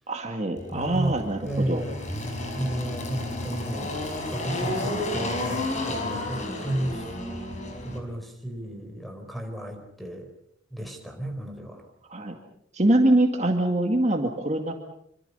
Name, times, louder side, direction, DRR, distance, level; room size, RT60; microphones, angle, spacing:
voice 1, 0.1-1.8 12.1-12.3 12.7-14.7, right 1 dB, 35° right, 3 dB, 2.2 m, -24 dB
Engine, 0.6-8.0, left 1 dB, 40° left, 5.1 m, -32 dB
voice 2, 0.7-2.0 2.6-4.0 4.3-7.0 7.8-10.3 10.7-11.8, right 1 dB, ahead, 5 dB, 4.3 m, -33 dB
26.5 x 25.5 x 5.6 m, 0.72 s
head